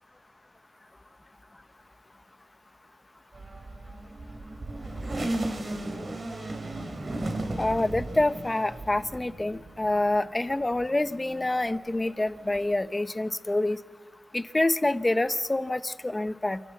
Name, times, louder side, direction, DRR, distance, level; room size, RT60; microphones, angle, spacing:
sound 1, 3.3-10.2 10.7-12.6, right 1 dB, 40° right, 3.1 m, -36 dB
voice 1, 7.6-13.8 14.3-16.6, left 2 dB, 20° left, 13 dB, 0.9 m, -27 dB
28.0 x 12.0 x 8.4 m, 1.3 s
cardioid pair, 75°, 0 cm